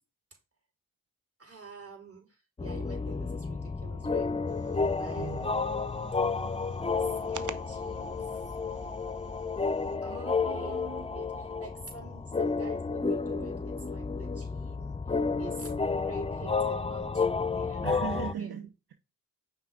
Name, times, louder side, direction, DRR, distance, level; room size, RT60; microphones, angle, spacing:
voice 1, 1.4-4.3 4.9-5.3 7.0-8.6 10.0-15.7 16.0-17.9 18.4-18.6, right 4 dB, 40° right, 3.6 m, -48 dB
sound 1, 2.6-18.3, left 4 dB, 15° left, 0.4 m, -31 dB
sound 2, 4.5-10.0, right 6 dB, 55° right, 0.8 m, -48 dB
voice 2, 5.2-5.6 9.9-11.2 17.8-18.9, right 8 dB, 80° right, 0.9 m, -40 dB
5.7 x 4.7 x 3.6 m
cardioid pair, 55°, 37 cm